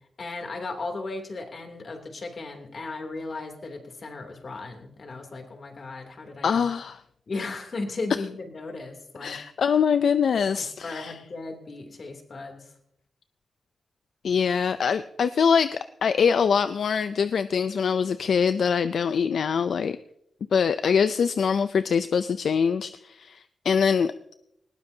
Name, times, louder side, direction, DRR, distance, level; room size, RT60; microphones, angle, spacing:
voice 1, 0.2-6.7 7.3-9.4 10.5-12.7, left 3 dB, 50° left, 3 dB, 2.9 m, -36 dB
voice 2, 6.4-7.0 9.2-11.2 14.2-20.0 20.5-24.1, left 6 dB, 75° left, 12 dB, 0.4 m, -23 dB
19.5 x 19.0 x 2.8 m, 0.76 s
wide cardioid pair, 120°, 0 cm